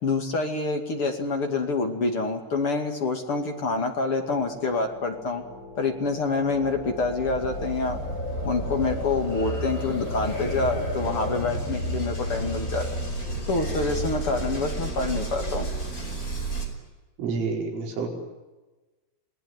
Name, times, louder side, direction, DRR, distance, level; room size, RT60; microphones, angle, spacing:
voice 1, 0.0-5.4 5.8-8.0 8.4-12.9 13.5-15.7, left 3 dB, 40° left, 4 dB, 2.1 m, -27 dB
sound 1, 4.2-16.7, right 1 dB, 15° left, 5.1 m, -32 dB
voice 2, 17.2-18.1, right 4 dB, 85° right, 1 dB, 7.3 m, -28 dB
29.0 x 19.5 x 9.7 m, 1.2 s
omnidirectional pair, 5.7 m